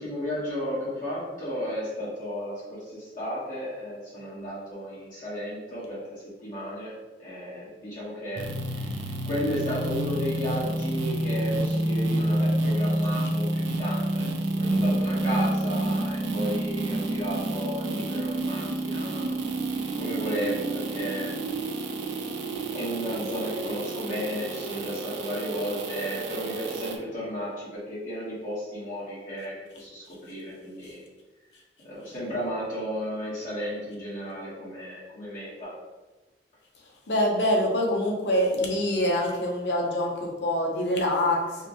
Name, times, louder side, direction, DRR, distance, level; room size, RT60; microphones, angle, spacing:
voice 1, 0.0-6.9 7.2-8.9 9.2-19.3 20.0-21.3 22.7-31.0 31.8-35.7, equal, 50° left, -10 dB, 1.4 m, -34 dB
sound 1, 8.4-27.0, right 1 dB, 80° right, 0.5 m, -29 dB
voice 2, 37.1-41.7, left 1 dB, 65° left, -1 dB, 0.8 m, -25 dB
4.8 x 2.3 x 3.0 m, 1.2 s
head